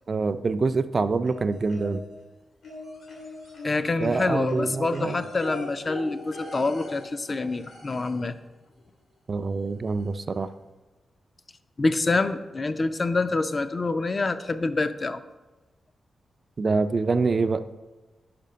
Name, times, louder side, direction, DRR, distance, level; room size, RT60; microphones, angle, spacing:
voice 1, 0.1-2.0 4.0-5.2 9.3-10.5 16.6-17.6, right 4 dB, 45° right, 11 dB, 0.3 m, -25 dB
sound 1, 1.2-2.2 2.6-8.3 9.5-9.6 10.0-10.1, left 2 dB, 75° left, 1.9 m, -41 dB
voice 2, 3.6-8.3 11.8-15.2, left 3 dB, 35° left, 11 dB, 0.4 m, -26 dB
5.1 x 4.9 x 5.5 m, 1.1 s
cardioid pair, 85°, 0 cm